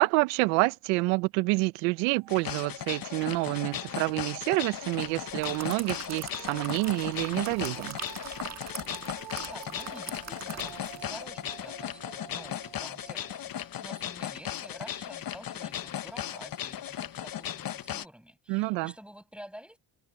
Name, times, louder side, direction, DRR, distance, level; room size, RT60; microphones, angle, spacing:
voice 1, 0.0-8.0 18.5-18.9, right 25 dB, 90° right, 0.9 m, -28 dB
sound 1, 2.0-14.8, right 12 dB, 60° right, 7.4 m, -51 dB
sound 2, 2.3-18.0, left 11 dB, 45° left, 1.1 m, -37 dB
sound 3, 5.1-11.1 11.4-11.6, right 7 dB, 30° right, 1.6 m, -42 dB
voice 2, 9.3-19.8, equal, ahead, 6.5 m, -49 dB
supercardioid pair, 75°, 49 cm